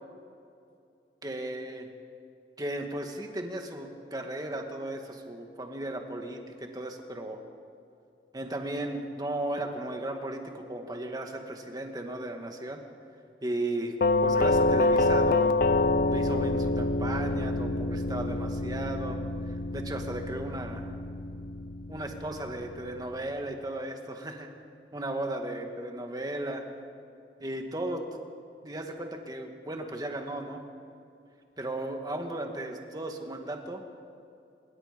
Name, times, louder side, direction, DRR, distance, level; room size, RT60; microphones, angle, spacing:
voice 1, 1.2-1.9 2.6-7.4 8.3-12.8 13.4-14.0 14.2-15.5 16.1-19.2 19.5-20.9 21.9-24.5 24.9-26.6 27.4-28.2 28.6-30.6 31.6-33.8, right 1 dB, 20° right, 3 dB, 2.1 m, -35 dB
Doorbell, 14.0-22.8, left 2 dB, 55° left, 0.6 m, -27 dB
26.5 x 22.0 x 5.3 m, 2.5 s
head